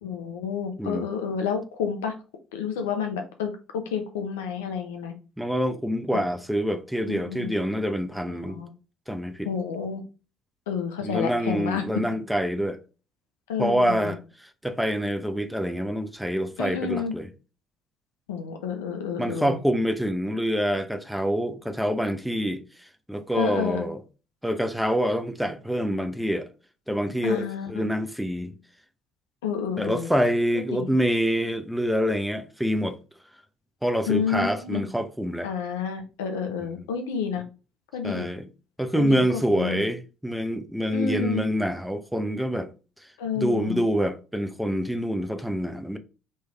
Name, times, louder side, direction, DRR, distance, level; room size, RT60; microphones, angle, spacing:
voice 1, 0.0-2.1 2.5-5.1 6.1-6.2 7.1-7.5 8.4-8.7 9.4-10.0 10.7-11.8 12.1-12.2 13.5-14.2 16.6-17.1 18.3-19.6 23.3-23.8 27.2-27.8 29.4-30.1 30.7-30.9 34.1-34.9 35.4-37.4 37.9-38.3 38.9-39.2 39.5-39.8 40.9-41.4 43.2-43.8, left 6 dB, 85° left, 0.8 m, -30 dB
voice 2, 5.4-8.6 9.1-9.5 11.0-12.8 13.6-17.3 19.2-24.0 24.4-26.5 26.9-28.5 29.8-33.0 33.8-35.5 38.0-38.5 38.8-42.7 43.4-46.0, equal, ahead, 0.8 m, -26 dB
4.4 x 3.2 x 3.4 m
hypercardioid pair, 60°, 0 cm